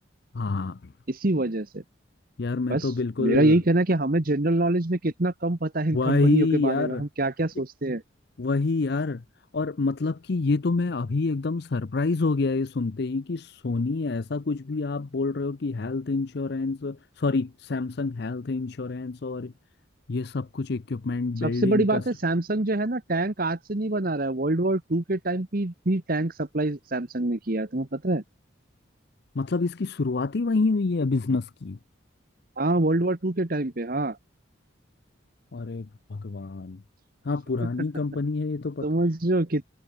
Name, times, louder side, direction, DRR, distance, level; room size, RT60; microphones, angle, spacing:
voice 1, 0.3-0.9 2.4-3.6 5.9-7.0 8.4-9.2 9.5-19.5 20.1-22.0 29.4-31.8 35.5-36.8 37.2-38.9, left 3 dB, 55° left, 0.5 m, -27 dB
voice 2, 1.1-1.8 2.7-8.0 21.4-28.2 32.6-34.2 37.6-37.7 38.8-39.7, right 2 dB, 45° right, 1.2 m, -25 dB
head